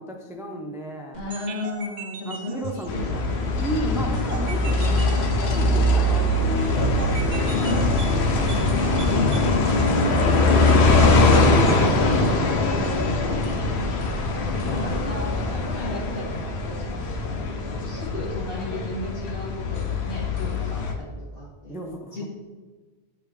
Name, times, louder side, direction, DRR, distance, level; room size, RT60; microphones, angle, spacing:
voice 1, 0.0-1.2 2.3-5.0 5.3-7.7 8.4-9.0 10.4-11.6 12.8-13.6 21.7-22.3, equal, 5° right, 2 dB, 0.4 m, -34 dB
voice 2, 1.1-3.5 7.5-8.0 9.1-10.4 11.0-13.2 13.9-14.0 14.7-21.8 22.1-22.3, left 2 dB, 65° left, -5 dB, 2.2 m, -34 dB
sound 1, 1.1-11.8, right 4 dB, 55° right, 0.5 m, -38 dB
sound 2, 2.9-20.9, left 2 dB, 85° left, 0.9 m, -22 dB
9.2 x 3.4 x 3.3 m, 1.3 s
omnidirectional pair, 1.1 m